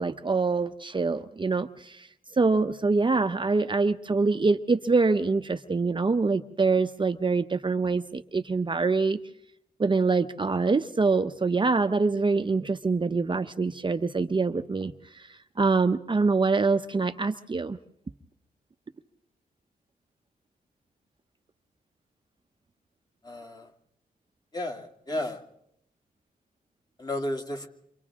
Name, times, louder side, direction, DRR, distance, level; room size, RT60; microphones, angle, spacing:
voice 1, 0.0-2.1 2.4-9.2 9.8-15.3 15.6-17.8, right 4 dB, 30° right, 8 dB, 0.8 m, -25 dB
voice 2, 23.2-23.7 24.5-25.4 27.0-27.7, left 1 dB, 25° left, 3 dB, 2.6 m, -33 dB
29.0 x 25.5 x 3.7 m, 0.75 s
cardioid pair, 75°, 16 cm